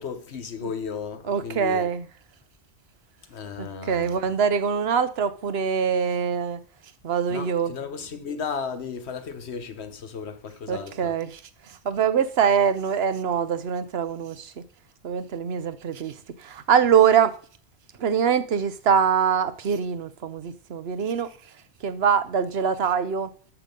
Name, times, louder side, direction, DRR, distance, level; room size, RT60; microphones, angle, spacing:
voice 1, 0.0-1.9 3.3-4.3 7.3-11.2, left 6 dB, 70° left, 1.4 m, -35 dB
voice 2, 1.3-2.0 3.6-6.6 7.0-7.7 10.7-11.4 11.7-14.6 15.0-16.1 16.4-17.3 18.0-21.3 21.8-23.3, right 7 dB, 65° right, 1.1 m, -23 dB
13.0 x 5.9 x 5.3 m
omnidirectional pair, 1.2 m